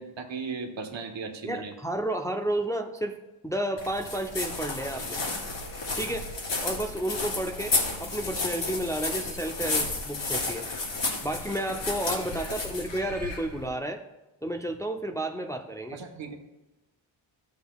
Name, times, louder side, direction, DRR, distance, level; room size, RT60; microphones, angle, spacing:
voice 1, 0.0-1.7 7.6-7.7 12.5-12.6 15.9-16.4, right 4 dB, 65° right, 4 dB, 1.3 m, -37 dB
voice 2, 1.4-3.2 3.4-5.2 5.9-6.3 6.6-7.7 8.0-10.7 11.2-14.0 14.4-16.0, right 1 dB, 5° left, 3 dB, 0.5 m, -31 dB
sound 1, 3.8-13.7, left 3 dB, 65° left, 2.6 m, -32 dB
13.0 x 7.2 x 2.4 m, 1.1 s
cardioid pair, 70°, 49 cm